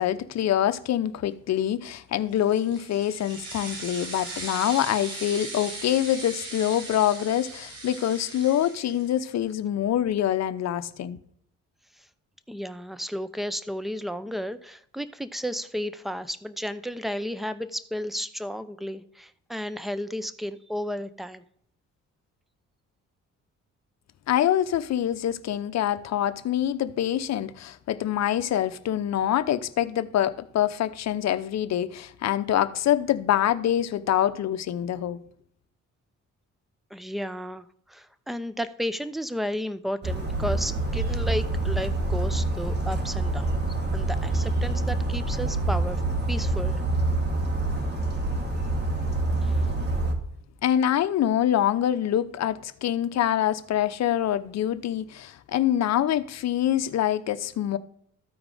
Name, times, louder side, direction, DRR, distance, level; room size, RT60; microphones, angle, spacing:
voice 1, 0.0-11.2 24.3-35.2 50.6-57.8, left 11 dB, 60° left, 0.7 m, -25 dB
sound 1, 2.3-9.3, right 2 dB, 75° right, 4.1 m, -38 dB
voice 2, 12.5-21.4 36.9-43.6 43.9-46.0 46.3-46.8 49.4-49.6, equal, ahead, 0.6 m, -33 dB
Bird vocalization bird call bird song, 40.0-50.1, right 2 dB, 35° right, 2.3 m, -26 dB
14.0 x 4.7 x 3.8 m
cardioid pair, 90°, 30 cm